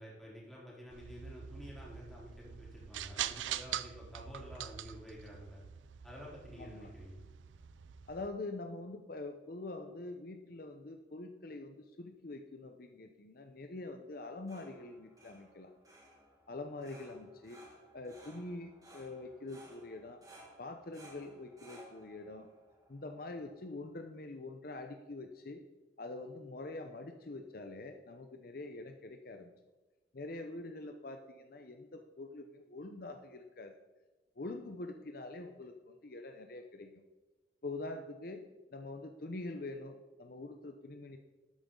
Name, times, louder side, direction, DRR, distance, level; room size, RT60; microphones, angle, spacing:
voice 1, 0.0-5.6 6.0-7.2, equal, ahead, -6 dB, 3.5 m, -50 dB
sound 1, 0.9-8.3, right 10 dB, 90° right, 0.5 m, -44 dB
voice 2, 6.6-6.9 8.1-15.7 16.5-17.6 17.9-20.2 20.6-22.5 22.9-25.6 26.0-29.5 30.1-33.8 34.4-36.9 37.6-38.4 38.7-41.2, left 2 dB, 50° left, 5 dB, 0.7 m, -45 dB
sound 2, 14.1-23.9, right 1 dB, 20° right, 2.0 m, -59 dB
12.5 x 9.0 x 3.8 m, 1.1 s
head